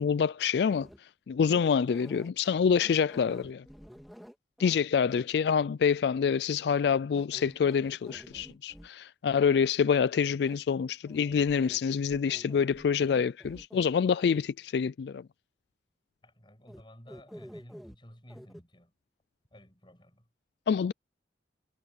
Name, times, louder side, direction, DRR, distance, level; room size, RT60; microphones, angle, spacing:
voice 1, 0.0-3.6 4.6-15.2 20.7-20.9, left 6 dB, 65° left, 0.3 m, -27 dB
sound 1, 0.7-1.0 1.4-2.3 2.7-4.8 5.1-5.2 6.9-8.9 10.4-10.6 11.1-11.8 12.1-13.9 14.2-14.4 16.7-16.8 17.1-18.0 18.3-18.6, equal, ahead, 2.4 m, -49 dB
voice 2, 16.2-18.9 19.5-20.3, equal, 25° left, 7.6 m, -54 dB
head